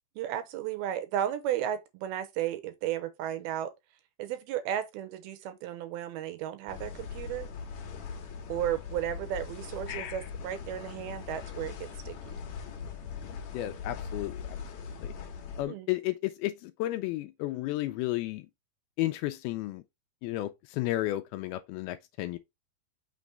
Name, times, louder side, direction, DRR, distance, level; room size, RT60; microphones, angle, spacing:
voice 1, 0.2-3.7 4.2-7.5 8.5-12.4 15.7-15.9, right 11 dB, 75° right, 2.5 m, -34 dB
sound 1, 6.7-15.6, left 6 dB, 65° left, 1.8 m, -41 dB
voice 2, 9.9-10.2 13.5-14.6 15.0-15.1 15.6-18.5 19.0-19.8 20.2-22.4, left 16 dB, 80° left, 2.3 m, -33 dB
6.0 x 3.4 x 5.2 m
omnidirectional pair, 4.7 m